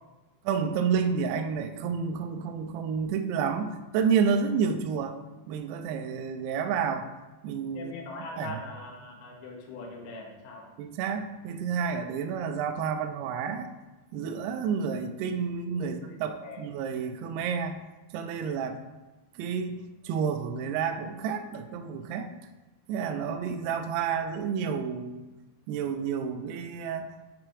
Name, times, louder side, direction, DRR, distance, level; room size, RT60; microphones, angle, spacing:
voice 1, 0.4-5.2 5.5-7.1 7.4-7.9 8.4-8.6 10.8-13.7 14.1-17.8 18.1-18.8 19.4-22.3 22.9-25.2 25.7-27.1, right 6 dB, 80° right, 6 dB, 2.4 m, -30 dB
voice 2, 7.7-10.7 15.8-15.9 16.3-16.6, left 3 dB, 70° left, 0 dB, 2.9 m, -41 dB
7.7 x 4.6 x 4.7 m, 1.1 s
omnidirectional pair, 5.2 m